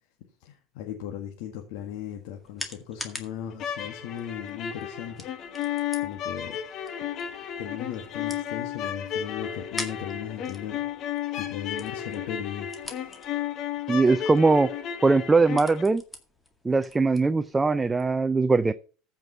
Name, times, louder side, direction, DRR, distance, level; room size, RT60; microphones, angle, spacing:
voice 1, 0.4-5.3 5.5-5.6 6.0-6.6 7.6-10.8 11.4-13.1, left 9 dB, 75° left, 1.7 m, -37 dB
sound 1, 1.8-18.2, left 2 dB, 10° left, 2.0 m, -45 dB
sound 2, 3.5-15.8, left 10 dB, 45° left, 1.5 m, -33 dB
voice 2, 13.9-14.7 15.0-16.0 16.6-18.7, right 3 dB, 10° right, 0.5 m, -21 dB
14.5 x 5.4 x 5.5 m
supercardioid pair, 135°, 0 cm